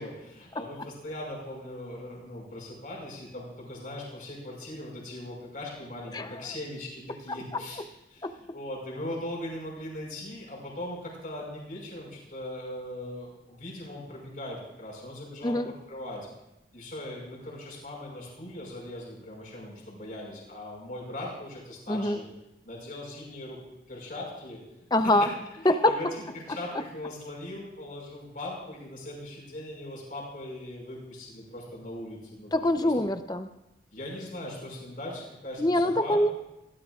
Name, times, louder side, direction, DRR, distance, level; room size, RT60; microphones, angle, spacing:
voice 1, 0.0-7.8 8.1-15.6 15.9-16.3 16.7-22.3 22.6-23.6 23.9-24.6 25.0-25.3 25.6-32.5 32.8-32.9 33.9-36.3, left 1 dB, 50° left, -3 dB, 5.6 m, -40 dB
voice 2, 7.3-7.6 8.2-8.3 15.4-15.7 21.9-22.2 24.9-25.3 25.6-26.0 32.5-33.5 35.6-36.3, left 1 dB, 20° left, 9 dB, 0.6 m, -24 dB
20.0 x 18.0 x 2.5 m, 0.93 s
head